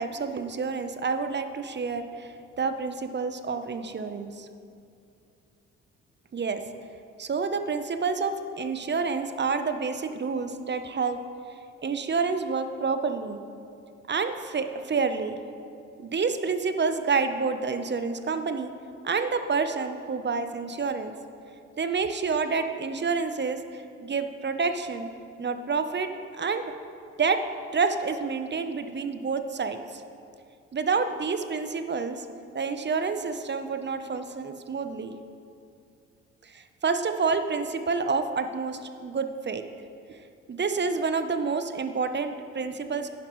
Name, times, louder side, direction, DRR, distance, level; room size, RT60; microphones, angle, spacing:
voice 1, 0.0-4.5 6.3-6.6 7.2-11.2 11.8-13.4 14.1-15.4 16.0-18.7 19.0-21.1 21.8-25.1 25.4-26.7 27.2-27.5 27.7-30.0 30.7-32.3 32.5-35.1 36.4-39.6 40.1-40.2 40.5-43.1, right 4 dB, 30° right, 9 dB, 0.8 m, -28 dB
11.5 x 10.0 x 3.2 m, 2.5 s
hypercardioid pair, 45°, 36 cm